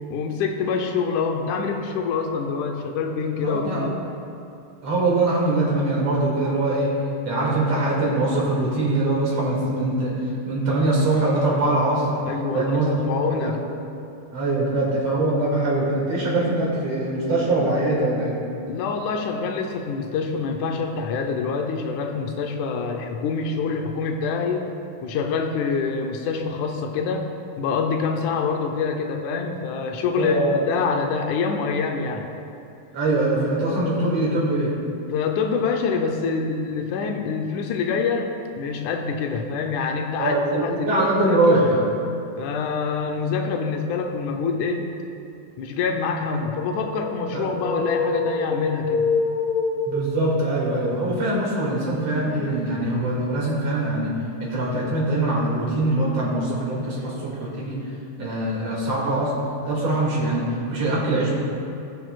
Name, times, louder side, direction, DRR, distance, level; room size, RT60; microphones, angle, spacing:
voice 1, 0.1-3.9 12.3-13.6 18.7-24.7 25.0-27.3 27.6-30.4 30.7-32.3 35.1-41.6 42.4-44.9 45.6-49.0, left 5 dB, 85° left, 4 dB, 2.1 m, -26 dB
voice 2, 3.4-3.9 4.8-6.9 7.2-10.1 10.4-12.2 12.5-12.9 13.4-13.5 14.3-18.3 30.2-30.6 32.9-34.7 40.2-41.8 47.3-47.4 49.9-54.1 54.4-57.7 58.2-59.3 59.6-61.3, right 2 dB, 55° right, -6 dB, 3.1 m, -22 dB
sound 1, 46.7-50.3, left 4 dB, 65° left, 1.8 m, -26 dB
18.0 x 7.0 x 2.3 m, 2.7 s
omnidirectional pair, 3.4 m